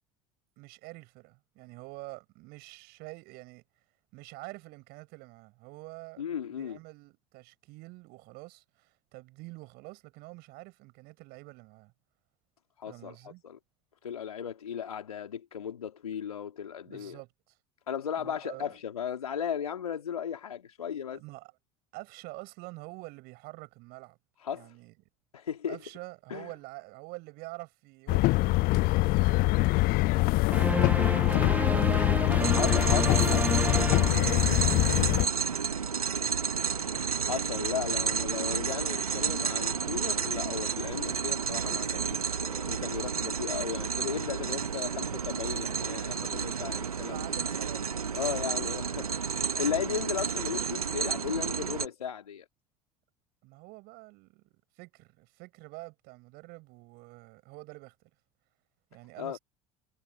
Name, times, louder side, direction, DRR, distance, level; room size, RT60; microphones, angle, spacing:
voice 1, 0.6-3.6 4.1-6.2 6.5-11.9 12.9-13.4 16.8-17.6 18.2-18.8 21.1-21.5 21.9-24.2 24.5-24.9 25.7-32.8 34.3-35.5 47.0-48.4 53.4-58.1 58.9-59.4, right 23 dB, 60° right, 7.9 m, -47 dB
voice 2, 6.2-6.8 12.8-13.6 14.0-17.2 17.9-21.2 24.4-24.7 25.3-25.8 26.3-26.5 32.5-33.5 37.3-47.3 48.1-49.3 49.6-52.5 59.2-59.4, left 8 dB, 85° left, 3.6 m, -36 dB
sound 1, 28.1-35.3, left 22 dB, 55° left, 0.7 m, -24 dB
sound 2, 30.5-35.0, right 2 dB, 10° right, 0.9 m, -31 dB
sound 3, 32.4-51.9, right 6 dB, 90° right, 1.8 m, -31 dB
figure-of-eight pair, 70°, 18 cm